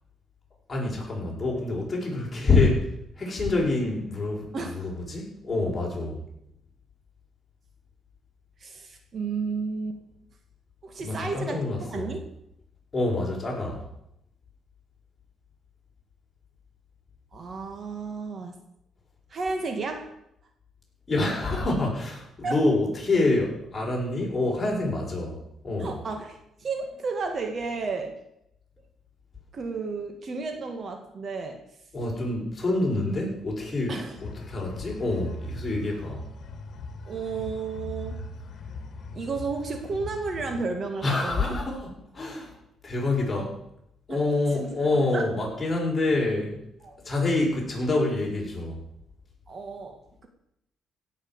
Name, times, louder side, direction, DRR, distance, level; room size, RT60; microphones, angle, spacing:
voice 1, 0.7-6.2 11.0-12.1 12.9-13.8 21.1-26.0 31.9-36.2 41.0-42.5 42.8-43.6 44.1-46.6 47.0-48.8, left 2 dB, 25° left, -3 dB, 6.4 m, -27 dB
voice 2, 8.6-10.0 10.8-12.3 17.3-18.6 19.3-20.1 22.4-22.6 25.8-28.1 29.5-31.6 33.9-34.2 37.1-38.2 39.1-41.5 44.1-44.2 44.5-45.3 46.8-46.9 49.5-50.3, right 4 dB, 45° right, 4 dB, 2.1 m, -32 dB
sound 1, 34.2-40.6, left 2 dB, 55° left, 2.1 m, -40 dB
16.5 x 6.6 x 8.1 m, 0.79 s
cardioid pair, 90°, 0 cm